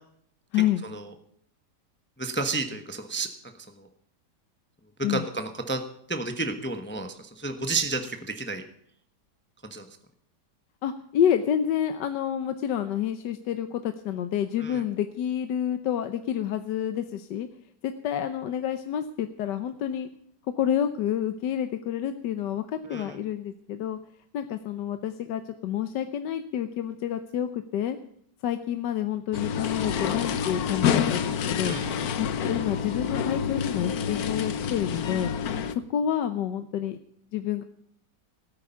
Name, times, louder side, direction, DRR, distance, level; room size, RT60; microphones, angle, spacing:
voice 1, 2.2-3.3 3.8-3.9 5.1-5.8 6.1-8.6 9.6-9.9 14.6-14.8 22.9-23.2 31.6-32.0, right 3 dB, 10° left, 6 dB, 0.8 m, -31 dB
voice 2, 10.8-17.5 17.8-20.1 20.5-24.0 24.3-28.0 28.4-31.8 32.2-35.3 35.7-37.0 37.3-37.6, left 10 dB, 80° left, 9 dB, 1.4 m, -28 dB
sound 1, 29.3-35.7, left 7 dB, 65° left, 1.3 m, -28 dB
17.5 x 9.5 x 5.7 m, 0.70 s
omnidirectional pair, 1.9 m